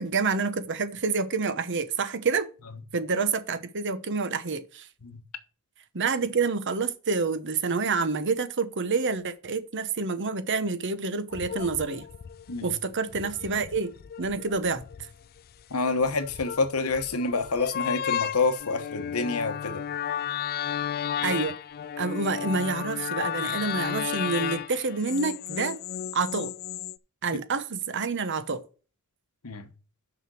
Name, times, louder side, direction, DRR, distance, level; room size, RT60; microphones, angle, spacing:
voice 1, 0.0-2.5 2.9-4.9 5.9-12.1 12.6-14.8 21.2-21.5 22.0-25.8 26.1-26.5 27.2-28.6, right 4 dB, 55° right, 1.0 m, -28 dB
sound 1, 11.3-27.0, left 9 dB, 45° left, 0.3 m, -34 dB
voice 2, 15.7-19.8 29.4-29.7, left 3 dB, 75° left, 1.2 m, -28 dB
6.3 x 6.1 x 6.3 m
head